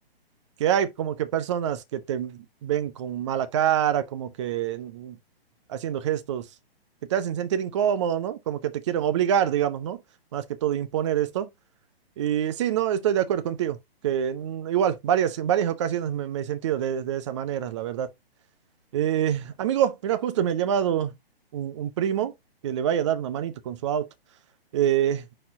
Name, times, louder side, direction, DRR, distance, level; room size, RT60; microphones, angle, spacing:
voice 1, 0.6-5.2 5.7-6.5 7.1-10.0 10.3-11.5 12.2-13.8 14.0-18.1 18.9-21.1 21.5-22.3 22.6-24.1 24.7-25.2, right 10 dB, 30° right, 0.8 m, -26 dB
9.5 x 4.4 x 2.6 m
figure-of-eight pair, 125°, 31 cm